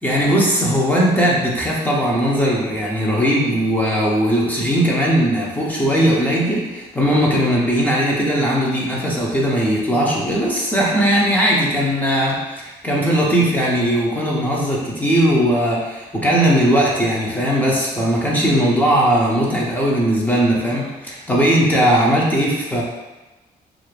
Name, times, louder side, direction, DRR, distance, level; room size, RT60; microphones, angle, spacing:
voice 1, 0.0-22.8, equal, 10° left, -4 dB, 0.6 m, -18 dB
2.5 x 2.4 x 3.2 m, 1.1 s
cardioid pair, 100°, 16 cm